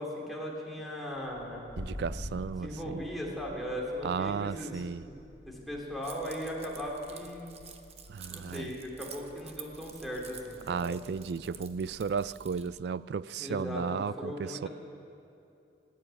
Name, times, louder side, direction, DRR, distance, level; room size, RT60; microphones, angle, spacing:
voice 1, 0.0-1.7 2.6-5.1 5.4-7.5 8.3-10.9 13.4-14.7, equal, ahead, -4 dB, 2.9 m, -38 dB
sound 1, 1.5-12.9, equal, 50° left, 1.3 m, -48 dB
voice 2, 1.8-3.0 4.0-5.1 8.1-8.7 10.7-14.7, right 6 dB, 65° right, 19 dB, 0.3 m, -34 dB
Keys jangling, 6.0-12.8, right 8 dB, 35° right, 0.9 m, -50 dB
16.5 x 9.8 x 8.9 m, 2.7 s
head